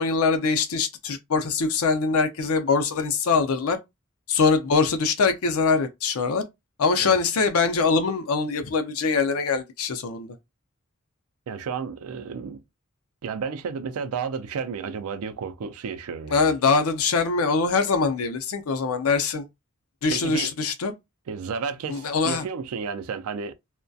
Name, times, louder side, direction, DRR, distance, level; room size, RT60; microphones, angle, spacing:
voice 1, 0.0-3.8 4.3-6.4 6.8-10.3 16.3-19.5 20.0-20.9 21.9-22.4, left 4 dB, 80° left, 0.5 m, -23 dB
voice 2, 11.5-12.6 13.2-16.5 20.1-20.5 21.3-23.5, right 6 dB, 80° right, 0.4 m, -32 dB
2.3 x 2.1 x 2.5 m
head